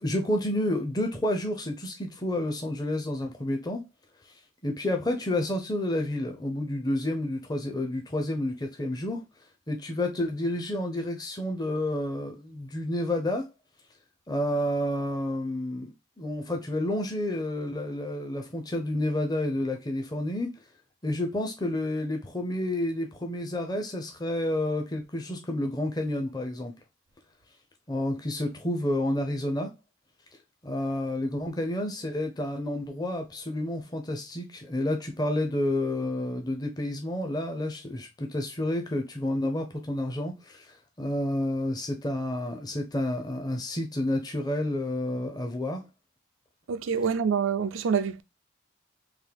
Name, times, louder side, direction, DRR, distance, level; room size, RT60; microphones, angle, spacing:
voice 1, 0.0-3.8 4.6-9.2 9.7-13.5 14.3-20.5 21.0-26.7 27.9-29.7 30.6-45.8, left 1 dB, 20° left, 0.5 m, -30 dB
voice 2, 46.7-48.2, right 6 dB, 85° right, 0.4 m, -26 dB
3.7 x 2.6 x 3.3 m
head